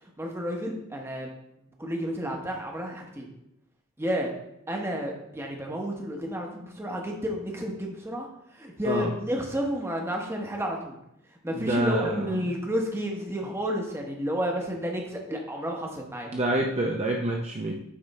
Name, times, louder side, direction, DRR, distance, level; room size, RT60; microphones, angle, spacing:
voice 1, 0.2-1.3 1.8-3.2 4.0-4.3 4.7-8.3 8.6-10.9 11.4-16.3, equal, 10° right, 1 dB, 0.9 m, -31 dB
voice 2, 11.5-12.4 16.3-17.8, right 1 dB, 30° right, 0 dB, 0.5 m, -27 dB
8.6 x 3.4 x 4.1 m, 0.82 s
head